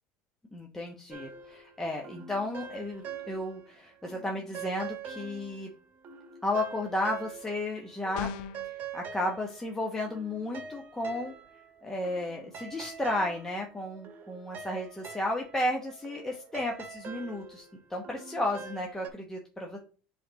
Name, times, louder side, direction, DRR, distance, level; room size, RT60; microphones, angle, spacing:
voice 1, 0.5-5.7 6.4-8.3 8.9-11.3 11.8-19.8, left 1 dB, 10° left, 0 dB, 0.9 m, -33 dB
sound 1, 1.1-3.7 4.0-7.8 8.0-19.1, right 6 dB, 40° right, 1.4 m, -45 dB
sound 2, 8.1-8.7, left 7 dB, 70° left, 0.8 m, -36 dB
7.6 x 3.5 x 4.0 m, 0.39 s
supercardioid pair, 115°, 5 cm